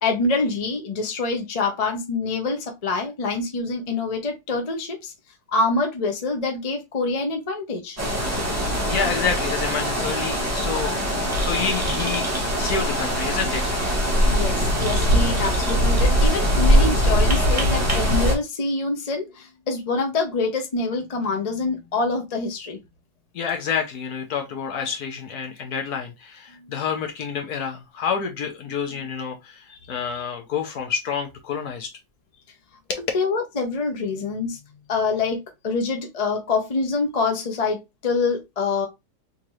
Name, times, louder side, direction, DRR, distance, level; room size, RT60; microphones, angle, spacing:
voice 1, 0.0-5.1 5.5-8.0 14.3-22.8 26.5-26.7 29.7-30.2 33.1-34.6 34.9-38.9, left 3 dB, 40° left, 0.5 m, -26 dB
sound 1, 8.0-18.4, equal, 15° right, 0.5 m, -21 dB
voice 2, 8.3-8.6 8.9-11.1 11.4-12.3 12.6-13.7 23.3-31.9 32.9-33.0, left 6 dB, 65° left, 1.1 m, -28 dB
3.8 x 2.8 x 3.0 m
omnidirectional pair, 2.1 m